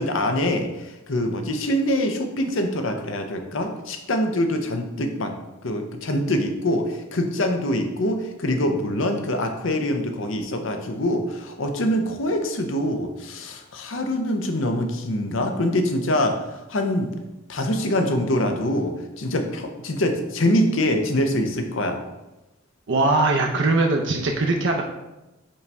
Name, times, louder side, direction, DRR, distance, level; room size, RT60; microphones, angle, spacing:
voice 1, 0.0-5.3 5.6-17.1 17.5-22.0, left 1 dB, 70° left, 5 dB, 0.8 m, -24 dB
voice 2, 22.9-24.8, right 2 dB, 60° right, 1 dB, 0.6 m, -21 dB
5.3 x 3.4 x 5.3 m, 1.0 s
head